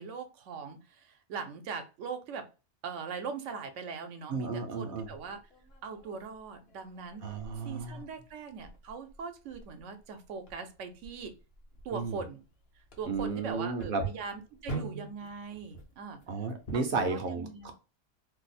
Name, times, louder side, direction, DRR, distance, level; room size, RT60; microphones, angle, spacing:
voice 1, 0.0-2.5 2.8-5.4 5.8-7.2 7.6-11.3 11.8-12.4 12.8-16.2 16.7-17.7, right 5 dB, 85° right, 7 dB, 0.9 m, -41 dB
voice 2, 4.3-5.1 7.2-8.0 11.9-12.2 13.1-14.0 16.3-17.7, right 4 dB, 60° right, 6 dB, 0.6 m, -33 dB
sound 1, 5.0-17.1, right 3 dB, 60° left, 1.0 m, -45 dB
2.7 x 2.0 x 4.0 m, 0.31 s
omnidirectional pair, 1.2 m